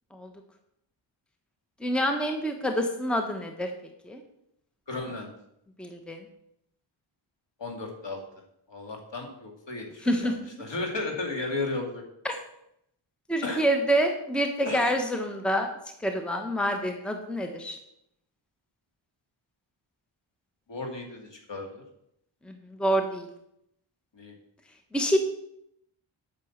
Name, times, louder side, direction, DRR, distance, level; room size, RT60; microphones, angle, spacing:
voice 1, 1.8-3.7 4.0-4.2 5.8-6.3 10.0-10.6 12.2-12.4 13.3-15.7 16.0-17.8 22.5-22.6 22.8-23.3 24.9-25.2, equal, ahead, 4 dB, 1.1 m, -27 dB
voice 2, 4.9-5.3 7.6-8.2 8.7-10.3 10.6-12.0 13.4-13.6 14.6-14.9 20.7-21.8 24.1-24.3, left 2 dB, 60° left, 2 dB, 2.4 m, -34 dB
8.4 x 6.2 x 7.2 m, 0.77 s
wide cardioid pair, 100°, 50 cm